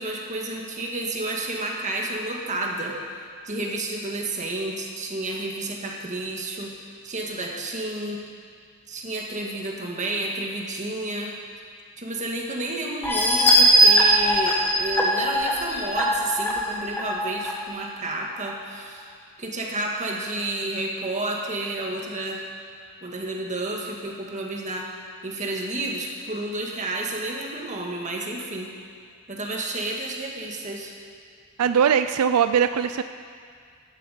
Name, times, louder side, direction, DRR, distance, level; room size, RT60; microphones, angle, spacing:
voice 1, 0.0-3.0 3.5-6.7 7.0-8.2 8.9-11.3 12.0-19.1 19.4-22.4 23.0-24.9 25.2-28.7 29.3-30.9, right 2 dB, 35° right, 0 dB, 1.8 m, -30 dB
sound 1, 13.0-17.5 18.0-18.1 18.5-18.6, right 1 dB, 10° left, 1.5 m, -20 dB
voice 2, 31.6-33.0, right 8 dB, 85° right, 10 dB, 0.4 m, -20 dB
15.0 x 11.5 x 5.1 m, 2.1 s
head